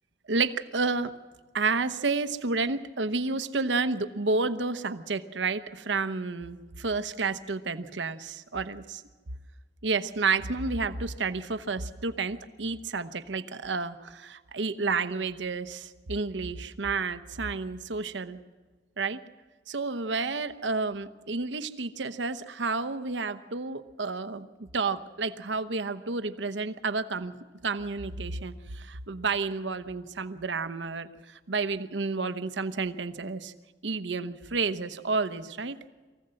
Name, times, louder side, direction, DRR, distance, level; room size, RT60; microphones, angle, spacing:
voice 1, 0.3-1.1 1.5-9.0 9.8-18.4 19.0-19.2 19.7-24.5 24.7-27.4 27.6-33.5 33.8-35.8, right 4 dB, 85° right, 11 dB, 0.9 m, -30 dB
23.5 x 15.5 x 7.7 m, 1.4 s
head